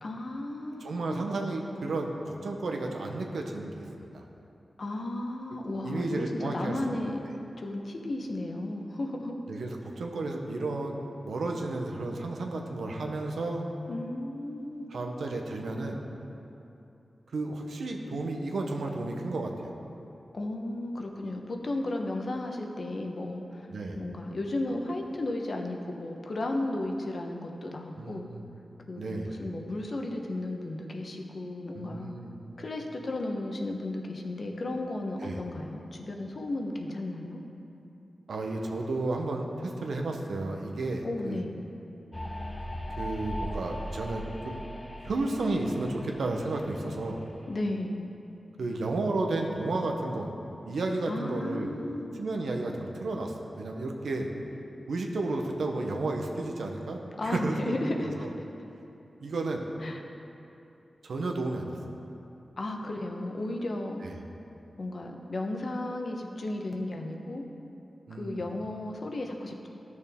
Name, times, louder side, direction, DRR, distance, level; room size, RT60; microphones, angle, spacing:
voice 1, 0.0-1.3 4.8-7.2 7.6-9.3 13.9-14.9 20.3-28.3 28.9-32.1 32.6-37.4 41.0-41.6 47.5-48.1 51.1-52.1 57.2-58.3 59.8-60.0 62.6-64.0 64.8-67.4 68.1-69.7, left 2 dB, 60° left, 2 dB, 1.0 m, -34 dB
voice 2, 0.8-4.2 5.8-6.8 7.2-7.3 9.5-11.0 11.2-13.7 14.9-16.0 17.3-19.5 23.7-24.0 28.0-28.4 29.0-29.3 31.7-32.4 35.2-35.4 38.3-41.4 43.0-44.7 45.0-47.2 48.6-50.3 50.7-51.7 52.1-54.3 54.9-57.7 58.0-58.1 59.2-59.6 61.0-61.8 64.0-64.2 68.1-68.4, right 2 dB, 90° right, 2 dB, 0.9 m, -32 dB
sound 1, 42.1-47.6, equal, 15° left, 0.7 m, -39 dB
12.5 x 6.3 x 3.6 m, 2.8 s
cardioid pair, 55°, 0 cm